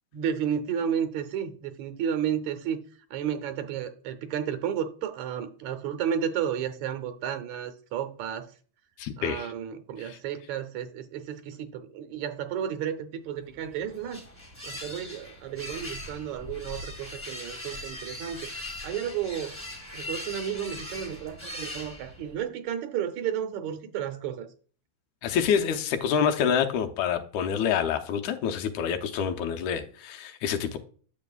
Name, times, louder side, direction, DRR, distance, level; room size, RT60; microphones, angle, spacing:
voice 1, 0.1-2.8 3.1-8.5 9.2-14.2 14.6-18.5 18.8-19.6 19.9-24.5, right 8 dB, 75° right, 2.0 m, -32 dB
voice 2, 9.0-9.5 10.0-10.2 25.2-30.8, left 7 dB, 85° left, 2.1 m, -27 dB
sound 1, 13.5-22.4, left 1 dB, 5° left, 1.4 m, -40 dB
9.7 x 7.3 x 2.3 m
omnidirectional pair, 3.4 m